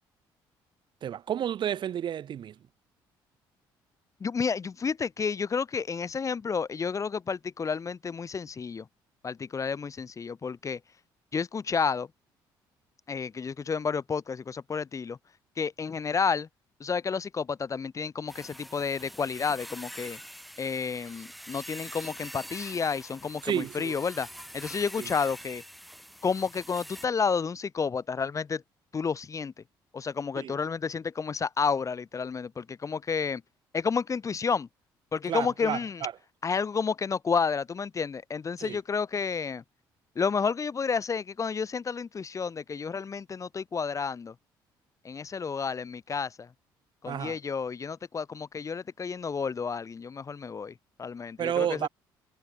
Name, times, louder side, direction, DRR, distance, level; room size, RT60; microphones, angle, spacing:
voice 1, 1.0-2.5 23.4-23.9 25.0-25.1 30.4-30.6 35.3-36.1 38.6-38.8 47.1-47.4 51.4-51.9, right 10 dB, 60° right, 3.3 m, -31 dB
voice 2, 4.2-8.9 9.2-10.8 11.3-12.1 13.1-15.2 15.6-16.5 16.8-20.2 20.6-24.3 24.5-25.6 26.2-28.6 28.9-29.5 29.9-33.4 33.7-34.7 35.1-36.1 36.4-39.6 40.2-44.3 45.0-46.5 47.0-51.9, left 5 dB, 35° left, 1.8 m, -31 dB
sound 1, 18.3-27.0, equal, ahead, 4.4 m, -45 dB
supercardioid pair, 80°, 9 cm